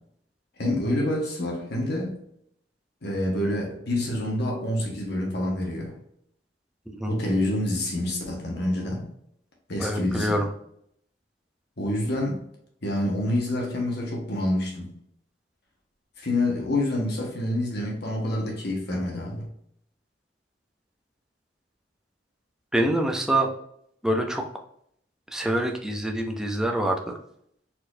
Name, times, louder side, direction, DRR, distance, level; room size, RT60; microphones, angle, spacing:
voice 1, 0.6-2.2 3.0-6.0 7.0-9.1 9.7-10.4 11.8-12.4 12.8-14.9 16.2-19.5, left 1 dB, 65° left, -1 dB, 1.4 m, -27 dB
voice 2, 6.9-7.2 9.8-10.5 22.7-23.5 24.0-24.4 25.3-27.2, right 1 dB, 5° right, 2 dB, 0.6 m, -25 dB
4.3 x 4.3 x 2.6 m, 0.70 s
head